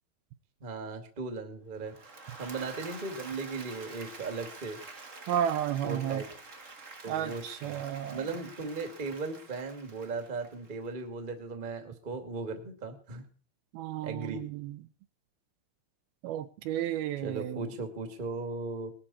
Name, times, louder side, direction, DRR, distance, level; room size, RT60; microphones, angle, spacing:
voice 1, 0.6-4.8 5.8-6.3 7.0-13.2 14.0-14.4 17.2-18.9, right 3 dB, 20° right, 5 dB, 1.5 m, -37 dB
Applause / Crowd, 1.8-10.9, right 3 dB, 50° right, 0.9 m, -48 dB
voice 2, 5.3-6.2 7.1-8.3 13.7-14.8 16.2-17.7, right 10 dB, 75° right, 11 dB, 2.6 m, -32 dB
20.5 x 12.0 x 4.3 m, 0.40 s
omnidirectional pair, 4.6 m